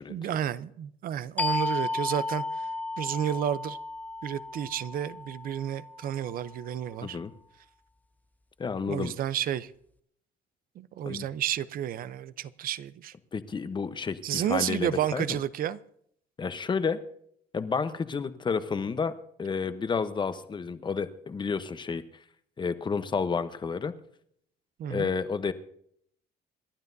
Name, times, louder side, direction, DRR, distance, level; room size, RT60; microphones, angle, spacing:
voice 1, 0.1-2.7 3.0-3.8 4.2-7.2 8.9-9.7 10.8-13.1 14.2-15.8 24.8-25.1, right 10 dB, 60° right, 0.7 m, -31 dB
sound 1, 1.4-6.7, left 2 dB, 10° left, 0.5 m, -34 dB
voice 2, 7.0-7.3 8.6-9.1 11.1-11.3 13.3-15.4 16.4-17.0 17.5-19.1 19.4-22.0 22.6-23.9 24.9-25.5, left 5 dB, 25° left, 0.9 m, -30 dB
27.5 x 11.5 x 2.7 m
cardioid pair, 110°, 17 cm